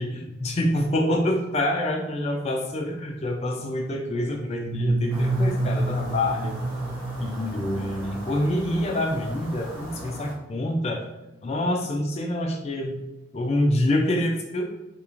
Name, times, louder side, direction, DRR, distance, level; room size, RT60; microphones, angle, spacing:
voice 1, 0.0-6.5 7.2-11.0 11.4-13.0 13.3-14.6, left 1 dB, 30° left, 2 dB, 0.4 m, -26 dB
sound 1, 4.6-8.3, right 1 dB, 65° right, 0.3 m, -28 dB
sound 2, 5.1-10.3, equal, 10° right, 0.7 m, -40 dB
3.0 x 2.4 x 2.4 m, 1.0 s
head